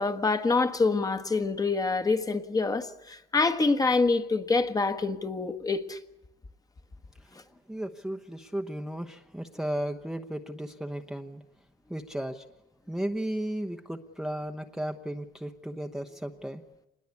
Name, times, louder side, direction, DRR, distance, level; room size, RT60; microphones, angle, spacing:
voice 1, 0.0-6.0, left 3 dB, 20° left, 1.5 m, -26 dB
voice 2, 7.7-11.4 11.9-12.4 12.9-16.6, right 1 dB, 5° right, 1.0 m, -34 dB
26.0 x 20.5 x 8.4 m
cardioid pair, 110°, 17 cm